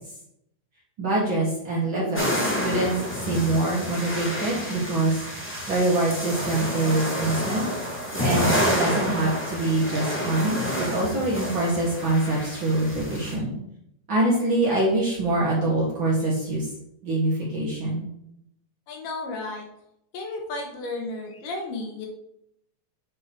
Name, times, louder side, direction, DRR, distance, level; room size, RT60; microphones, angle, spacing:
voice 1, 1.0-2.3 2.6-3.0 3.3-5.2 5.7-7.6 8.2-10.6 10.9-13.5 14.1-16.7 17.0-18.1, right 2 dB, 40° right, -5 dB, 2.1 m, -24 dB
sound 1, 2.1-13.3, equal, 10° left, 0.6 m, -29 dB
voice 2, 18.9-19.6 20.1-22.1, left 2 dB, 70° left, 2 dB, 2.7 m, -33 dB
7.9 x 4.5 x 4.6 m, 0.75 s
omnidirectional pair, 4.1 m